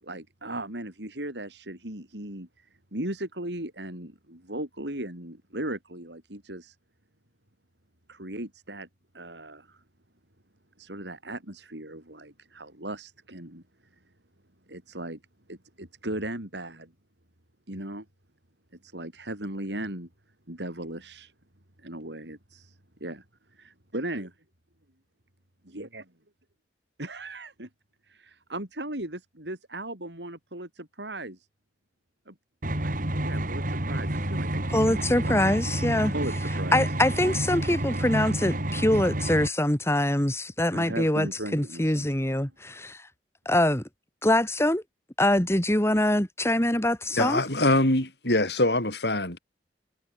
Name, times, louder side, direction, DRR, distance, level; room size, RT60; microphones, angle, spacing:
voice 1, 0.0-6.8 8.1-8.9 9.1-9.8 10.8-13.6 14.7-15.2 15.5-16.9 17.7-18.1 18.8-20.1 20.5-21.3 21.8-23.2 23.5-24.3 25.7-26.0 27.0-27.7 28.1-31.5 32.3-32.4 32.8-35.4 36.1-36.9 40.7-42.1 42.4-42.5, right 1 dB, 80° right, 7.7 m, -37 dB
sound 1, 32.6-39.5, right 1 dB, 50° right, 3.2 m, -29 dB
voice 2, 34.7-36.1 36.7-43.0 43.4-43.8 44.2-44.8 45.2-47.4, left 1 dB, 15° left, 2.8 m, -24 dB
voice 3, 47.2-49.4, left 1 dB, 70° left, 8.0 m, -23 dB
head